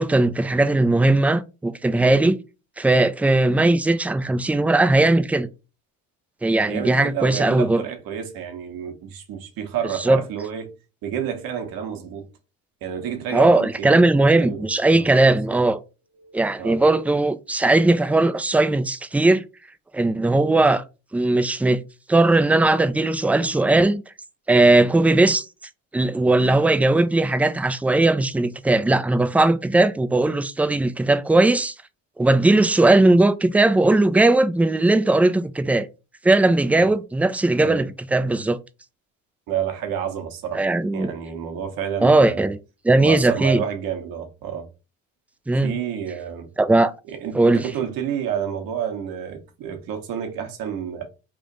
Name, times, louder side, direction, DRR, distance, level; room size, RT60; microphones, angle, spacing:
voice 1, 0.0-2.4 2.8-5.5 6.4-7.8 10.0-10.2 13.3-15.8 16.3-19.4 19.9-20.8 21.1-21.8 22.1-24.0 24.5-25.5 25.9-31.7 32.2-35.9 36.2-38.6 40.5-41.1 42.0-42.6 42.8-43.6 45.5-45.8 46.6-46.9 47.3-47.7, right 2 dB, 5° right, 0.3 m, -18 dB
voice 2, 6.7-10.7 11.0-12.3 12.8-15.1 15.5-15.6 16.2-16.8 36.7-36.9 37.6-37.8 39.5-40.6 40.9-42.5 43.0-44.7 45.6-46.5 47.1-51.1, right 8 dB, 70° right, 1.2 m, -30 dB
3.5 x 2.5 x 3.9 m
supercardioid pair, 70°, 36 cm